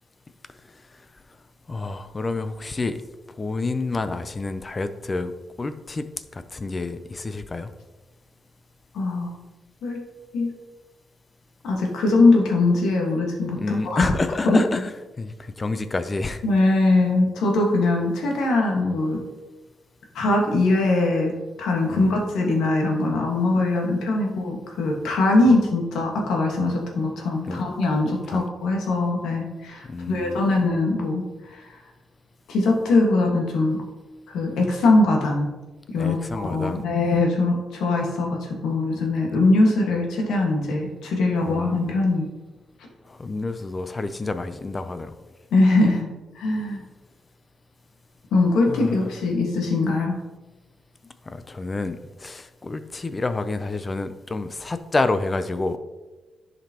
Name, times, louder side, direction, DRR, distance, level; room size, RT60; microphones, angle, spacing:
voice 1, 1.7-3.0 3.4-5.3 5.6-6.1 6.3-7.7 13.6-14.9 15.2-16.4 21.9-22.2 25.5-25.6 27.5-27.6 28.3-28.5 29.9-30.4 36.0-36.8 41.5-41.8 43.1-45.1 48.7-49.1 51.3-55.8, left 3 dB, 30° left, 11 dB, 0.5 m, -28 dB
voice 2, 8.9-9.3 9.8-10.0 10.3-10.5 11.6-14.1 14.4-14.6 16.4-19.2 20.1-31.7 32.5-33.8 34.3-35.5 35.9-42.3 45.5-46.1 46.3-46.8 48.3-50.1, left 2 dB, 90° left, 0 dB, 1.5 m, -21 dB
11.0 x 5.1 x 2.9 m, 1.2 s
cardioid pair, 100°, 0 cm